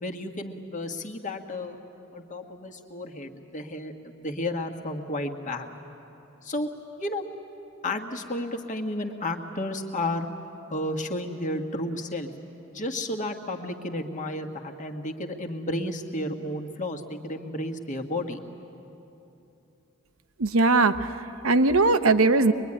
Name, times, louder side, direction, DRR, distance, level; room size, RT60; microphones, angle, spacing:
voice 1, 0.0-1.8 2.1-5.7 6.4-6.7 7.0-7.2 7.8-10.3 10.7-12.3 12.7-18.4, left 1 dB, 35° left, 3 dB, 1.6 m, -32 dB
voice 2, 20.4-22.5, right 3 dB, 70° right, 11 dB, 0.9 m, -20 dB
23.5 x 23.0 x 9.9 m, 2.9 s
head